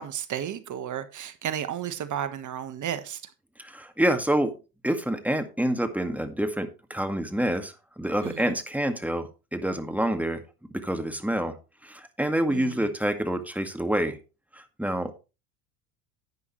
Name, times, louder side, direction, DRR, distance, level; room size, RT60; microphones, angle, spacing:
voice 1, 0.0-3.2 8.2-8.5 12.5-12.9, right 9 dB, 40° right, 1.4 m, -33 dB
voice 2, 3.6-4.5 4.8-10.4 10.7-11.6 11.8-14.2 14.5-15.2, right 1 dB, 5° right, 2.0 m, -27 dB
11.0 x 9.2 x 3.2 m
hypercardioid pair, 80°, 46 cm